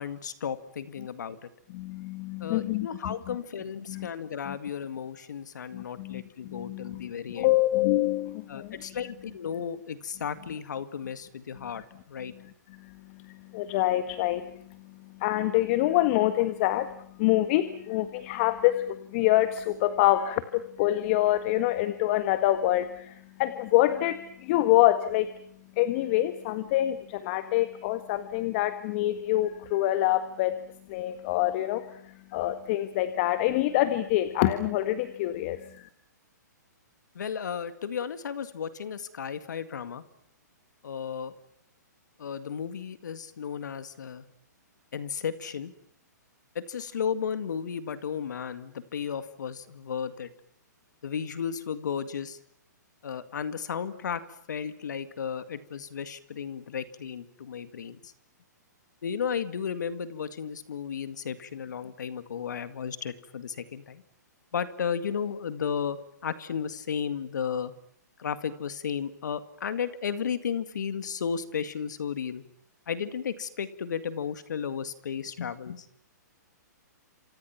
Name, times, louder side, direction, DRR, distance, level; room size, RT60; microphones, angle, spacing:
voice 1, 0.0-1.5 2.4-7.5 8.5-12.3 37.2-40.0 40.8-41.3 42.2-44.2 44.9-45.7 46.6-50.3 51.0-52.4 53.0-54.2 54.5-58.1 59.0-64.0 64.5-67.7 68.2-72.4 72.9-75.9, left 7 dB, 70° left, 12 dB, 2.0 m, -34 dB
voice 2, 1.7-3.4 3.9-4.1 4.4-4.6 5.7-7.1 7.3-8.7 11.6-11.8 12.3-25.3 25.7-30.6 30.9-35.9, left 15 dB, 40° left, 11 dB, 1.7 m, -26 dB
27.5 x 27.5 x 5.9 m, 0.64 s
hypercardioid pair, 135°, 10 cm